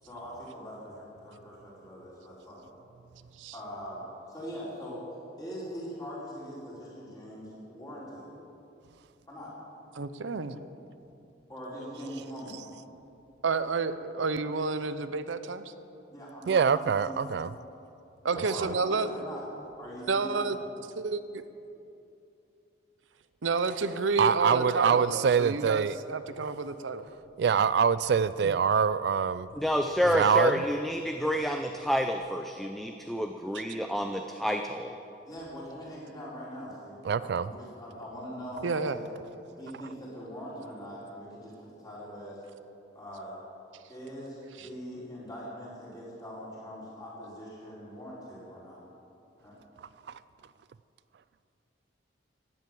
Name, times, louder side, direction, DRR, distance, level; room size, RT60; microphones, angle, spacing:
voice 1, 0.0-2.6 3.5-5.0 5.4-8.3 9.3-9.5 11.5-12.6 16.1-17.4 18.3-19.4 19.8-20.6 35.3-36.9 37.2-39.0 39.6-42.4 42.9-43.4 43.9-48.8 49.4-49.6, equal, 20° left, -7 dB, 4.9 m, -42 dB
voice 2, 9.9-10.6 13.4-15.7 18.2-19.2 20.1-20.6 21.0-21.4 23.4-27.1 28.4-28.5 33.5-33.6 38.6-39.0 44.6-44.7, right 4 dB, 90° right, 11 dB, 0.7 m, -30 dB
voice 3, 16.5-17.5 18.6-18.7 24.2-25.9 26.4-26.5 27.4-29.5 30.1-30.6 37.0-37.5 50.1-50.2, right 6 dB, 60° right, 16 dB, 0.3 m, -25 dB
voice 4, 29.6-35.0, equal, ahead, 5 dB, 0.5 m, -29 dB
16.5 x 10.5 x 7.7 m, 2.7 s
head